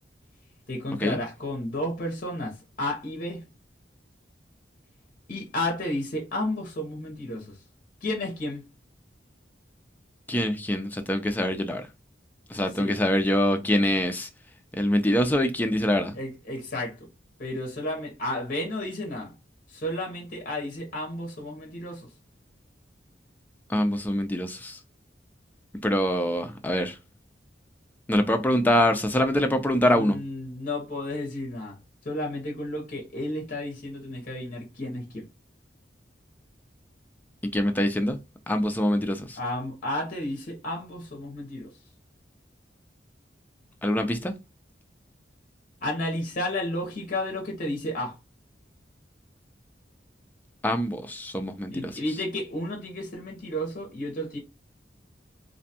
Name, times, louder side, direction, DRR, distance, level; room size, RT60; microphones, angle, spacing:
voice 1, 0.7-3.4 5.3-7.5 8.0-8.7 12.7-13.0 16.1-17.0 17.4-19.3 19.7-22.1 29.9-31.8 32.0-35.2 39.4-41.7 45.8-48.2 51.7-54.4, left 1 dB, 50° left, 0.7 m, -32 dB
voice 2, 10.3-11.8 12.5-14.3 14.7-16.1 23.7-24.8 25.8-26.9 28.1-30.2 37.5-38.2 38.5-39.4 43.8-44.3 50.6-51.7, left 1 dB, 10° left, 0.3 m, -24 dB
2.5 x 2.2 x 2.6 m
head